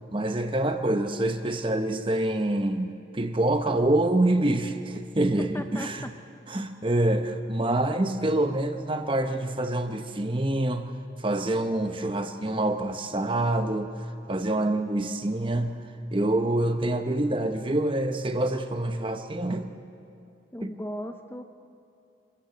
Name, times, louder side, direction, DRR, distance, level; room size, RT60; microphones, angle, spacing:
voice 1, 0.1-6.0 6.5-10.9 11.2-13.9 14.3-15.9 16.1-19.7 20.6-20.7, right 1 dB, 25° right, 7 dB, 0.9 m, -26 dB
voice 2, 5.5-5.9 20.5-21.4, equal, 10° left, 6 dB, 0.6 m, -36 dB
25.5 x 14.0 x 8.0 m, 2.6 s
head